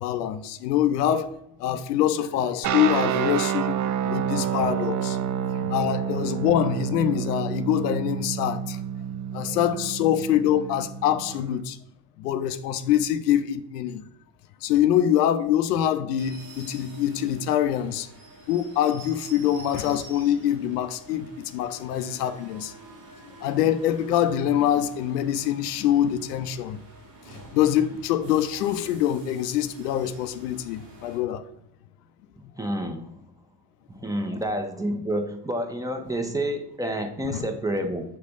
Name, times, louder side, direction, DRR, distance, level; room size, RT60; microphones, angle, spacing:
voice 1, 0.0-3.8 4.0-5.2 5.5-8.8 9.3-11.8 12.2-14.0 14.6-18.1 18.5-22.7 23.4-26.8 27.3-31.5 37.3-37.5, left 10 dB, 85° left, 0.5 m, -24 dB
sound 1, 2.6-11.5, right 9 dB, 40° right, 0.5 m, -29 dB
voice 2, 5.6-6.2 9.4-9.6 32.6-33.1 34.0-38.0, right 1 dB, 5° right, 1.0 m, -29 dB
sound 2, 16.2-31.2, right 1 dB, 80° right, 1.9 m, -47 dB
6.1 x 3.2 x 5.3 m
hypercardioid pair, 65°, 47 cm